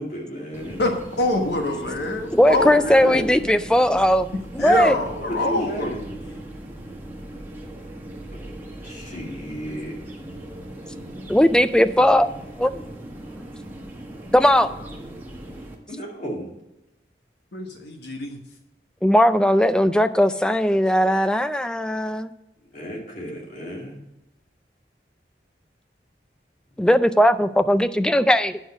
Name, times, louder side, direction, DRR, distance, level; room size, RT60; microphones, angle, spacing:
voice 1, 0.0-0.8 2.4-3.5 5.0-6.0 8.3-8.6 8.8-10.0 15.9-16.5 22.7-24.0, equal, 45° left, -1 dB, 2.4 m, -33 dB
sound 1, 0.5-15.7, right 1 dB, 10° right, 1.3 m, -39 dB
voice 2, 0.8-3.2 4.6-5.9 17.5-18.4, left 1 dB, 75° left, 3 dB, 1.3 m, -25 dB
voice 3, 2.3-4.3 4.6-4.9 11.3-12.3 12.6-12.7 14.3-14.7 19.0-22.3 26.8-28.6, equal, 5° left, 12 dB, 0.3 m, -18 dB
9.1 x 6.3 x 6.3 m, 0.90 s
head